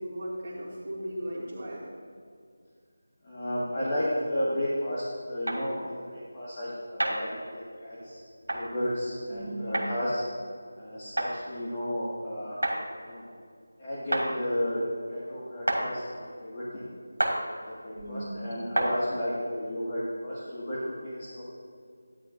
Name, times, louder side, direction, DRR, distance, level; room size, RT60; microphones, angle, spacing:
voice 1, 0.0-1.8 9.3-9.9 17.9-18.4, right 1 dB, 35° right, -8 dB, 2.4 m, -37 dB
voice 2, 3.2-8.2 8.5-10.2 10.8-12.6 13.0-13.3 13.8-14.8 15.1-16.9 17.6-21.4, equal, 30° left, -9 dB, 1.8 m, -33 dB
sound 1, 5.5-5.6 7.0-7.2 8.5-8.6 9.7-9.9 11.2-11.3 12.6-12.8 14.1-14.3 15.7-15.8 17.2-17.4 18.7-18.9, right 1 dB, 75° right, 1.9 m, -27 dB
12.0 x 9.9 x 2.6 m, 2.2 s
figure-of-eight pair, 165°, 0 cm